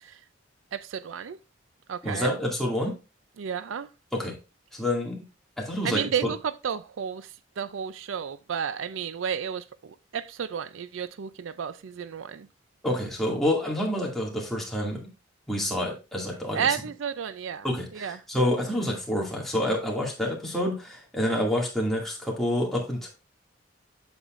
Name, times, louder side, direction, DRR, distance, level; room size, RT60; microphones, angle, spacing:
voice 1, 0.7-1.4 1.9-2.3 3.4-3.9 5.8-7.3 7.6-12.5 16.5-18.2, right 7 dB, 85° right, 0.4 m, -32 dB
voice 2, 2.0-2.9 4.1-4.3 4.7-5.2 5.6-6.3 12.8-15.1 15.5-16.7 17.6-23.1, left 1 dB, ahead, 2.2 m, -28 dB
8.1 x 7.1 x 2.5 m
head